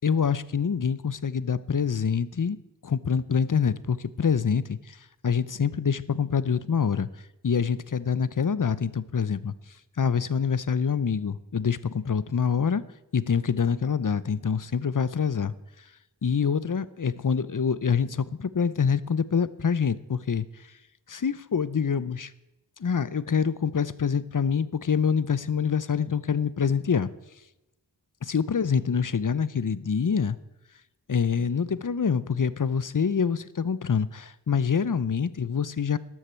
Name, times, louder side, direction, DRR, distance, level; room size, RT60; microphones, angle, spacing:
voice 1, 0.0-2.6 2.8-5.0 5.2-7.1 7.4-9.5 10.0-12.8 13.1-15.5 16.2-20.4 21.1-22.3 22.8-27.1 28.2-30.4 31.1-36.0, left 6 dB, 50° left, 17 dB, 0.7 m, -26 dB
13.0 x 12.0 x 4.5 m, 0.93 s
wide cardioid pair, 50°, 42 cm